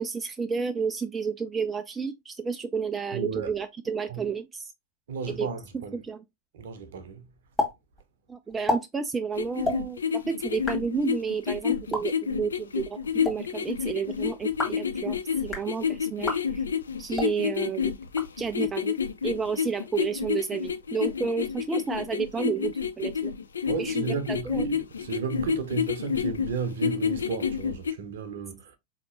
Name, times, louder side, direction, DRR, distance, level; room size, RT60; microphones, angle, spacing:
voice 1, 0.0-4.7 5.3-5.5 5.9-6.2 8.3-15.2 15.4-16.6 17.0-17.9 18.4-19.0 19.2-23.3 23.8-24.7, right 5 dB, 15° right, 0.3 m, -31 dB
voice 2, 3.1-3.5 4.1-4.2 5.1-6.0 6.5-7.3 23.7-28.8, right 5 dB, 60° right, 0.7 m, -33 dB
sound 1, 7.6-7.7 8.0-8.1 8.5-8.8 9.6-9.8 10.5-10.8 11.8-12.0 13.0-13.3 14.4-14.8 15.4-15.7 16.2-16.4 17.1-17.3 18.0-18.7, left 2 dB, 15° left, 1.3 m, -31 dB
sound 2, 9.3-27.9, left 7 dB, 70° left, 0.4 m, -29 dB
4.1 x 2.9 x 2.4 m
figure-of-eight pair, 90°, 0 cm